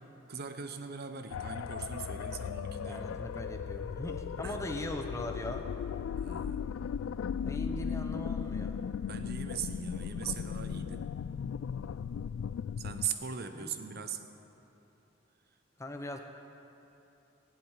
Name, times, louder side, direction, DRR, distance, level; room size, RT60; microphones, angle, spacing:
voice 1, 0.3-3.5 4.4-4.7 6.2-6.6 9.0-11.2 12.8-14.3, right 6 dB, 50° right, 8 dB, 0.9 m, -40 dB
sound 1, 1.3-13.1, left 7 dB, 75° left, 0.3 m, -37 dB
voice 2, 2.8-5.7 7.4-8.8 13.5-13.7 15.8-16.2, left 1 dB, 15° left, 4 dB, 0.8 m, -40 dB
17.5 x 7.8 x 9.1 m, 2.9 s
head